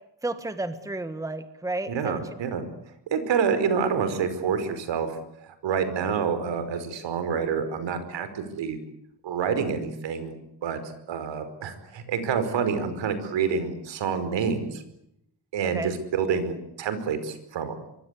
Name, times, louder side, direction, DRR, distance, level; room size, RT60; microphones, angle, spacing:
voice 1, 0.2-2.2 15.6-15.9, right 2 dB, 5° right, 11 dB, 1.5 m, -32 dB
voice 2, 1.9-2.6 3.1-5.2 5.4-8.8 9.2-10.3 10.6-10.8 11.1-14.8 15.5-17.8, right 6 dB, 75° right, 11 dB, 5.1 m, -27 dB
25.5 x 24.0 x 8.4 m, 0.77 s
cardioid pair, 150°, 44 cm